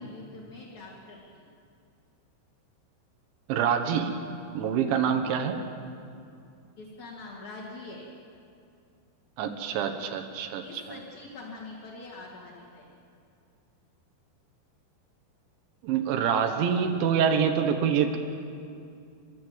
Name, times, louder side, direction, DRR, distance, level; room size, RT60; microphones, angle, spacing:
voice 1, 0.0-1.5 4.8-5.2 6.8-8.1 10.6-12.9, left 3 dB, 45° left, -5 dB, 3.4 m, -44 dB
voice 2, 3.5-4.2 4.6-5.6 9.4-10.8 15.8-18.2, right 7 dB, 75° right, 6 dB, 3.4 m, -26 dB
29.5 x 12.5 x 8.0 m, 2.4 s
omnidirectional pair, 5.7 m